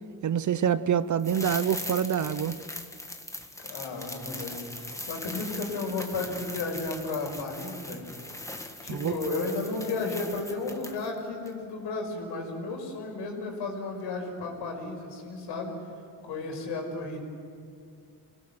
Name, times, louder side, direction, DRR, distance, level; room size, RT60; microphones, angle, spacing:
voice 1, 0.2-2.5 8.9-9.1, right 8 dB, 45° right, 15 dB, 0.9 m, -26 dB
sound 1, 1.2-11.2 11.5-11.6, left 1 dB, 5° left, 1.6 m, -40 dB
voice 2, 3.6-8.0 8.8-15.7 16.2-17.2, left 3 dB, 80° left, 2 dB, 5.6 m, -33 dB
26.0 x 18.0 x 7.9 m, 2.4 s
cardioid pair, 100°, 42 cm